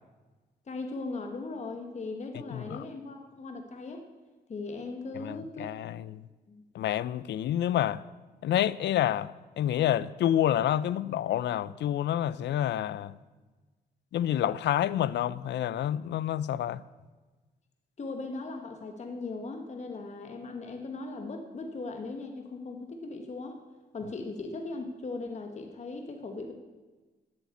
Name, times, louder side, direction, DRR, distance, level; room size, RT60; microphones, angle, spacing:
voice 1, 0.7-4.0 4.5-5.8 6.5-6.6 18.0-23.6 23.9-26.5, left 3 dB, 40° left, 1.2 m, -38 dB
voice 2, 2.5-2.8 5.2-6.2 6.7-8.0 8.4-9.3 9.6-13.1 14.1-16.8, left 11 dB, 80° left, 0.5 m, -28 dB
10.5 x 8.4 x 8.2 m
cardioid pair, 110°, 18 cm